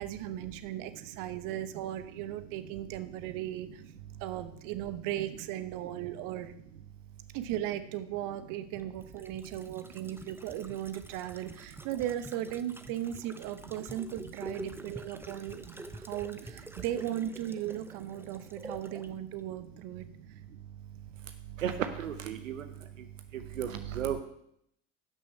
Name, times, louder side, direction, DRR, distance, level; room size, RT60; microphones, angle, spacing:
voice 1, 0.0-3.8 4.2-6.6 7.3-20.1, right 12 dB, 60° right, 12 dB, 1.0 m, -37 dB
sound 1, 8.7-19.1 19.4-19.5, right 2 dB, 5° right, 0.7 m, -47 dB
voice 2, 22.0-22.6 23.6-24.2, right 9 dB, 90° right, 9 dB, 0.7 m, -33 dB
12.0 x 6.3 x 5.5 m, 0.74 s
hypercardioid pair, 70°, 37 cm